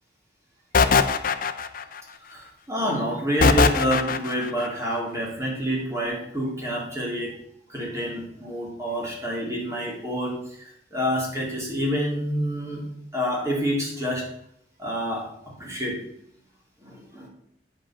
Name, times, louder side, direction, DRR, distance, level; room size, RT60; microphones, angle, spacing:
sound 1, 0.7-2.0 3.4-4.5, left 4 dB, 50° left, 0.5 m, -20 dB
voice 1, 2.3-7.3 7.7-12.8 13.1-14.2 14.8-16.0 16.8-17.3, equal, 15° right, -4 dB, 2.8 m, -28 dB
8.9 x 5.4 x 5.8 m, 0.71 s
head